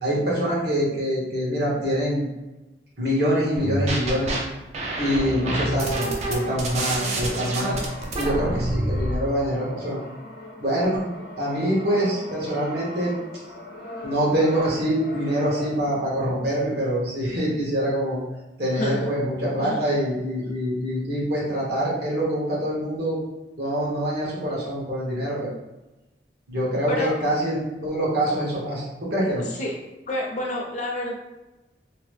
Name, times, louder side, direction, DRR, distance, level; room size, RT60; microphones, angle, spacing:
voice 1, 0.0-2.3 3.0-4.4 5.0-7.8 8.2-10.0 10.6-11.1 11.4-13.2 14.0-18.2 18.6-23.2 23.6-25.5 26.5-29.4, equal, 60° right, -6 dB, 1.0 m, -25 dB
sound 1, 3.6-4.4 4.7-9.2, right 1 dB, 35° right, 0.4 m, -27 dB
Brass instrument, 5.3-16.1, left 1 dB, 70° left, 0.9 m, -41 dB
voice 2, 18.7-19.1 19.7-19.9 26.9-27.1 29.4-29.7 30.1-31.2, left 1 dB, 40° left, -1 dB, 0.5 m, -29 dB
2.9 x 2.1 x 3.1 m, 1.1 s
head